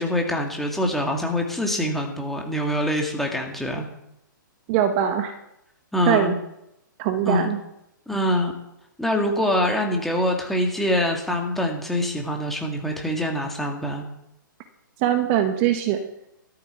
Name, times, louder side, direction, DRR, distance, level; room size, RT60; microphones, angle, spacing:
voice 1, 0.0-3.9 5.9-6.3 7.3-7.5 8.1-8.5 9.0-14.1, left 1 dB, ahead, 1 dB, 2.2 m, -24 dB
voice 2, 4.7-5.3 6.1-6.3 7.0-7.6 15.0-16.0, right 10 dB, 35° right, 7 dB, 1.2 m, -21 dB
13.0 x 12.0 x 4.5 m, 0.82 s
figure-of-eight pair, 125°, 11 cm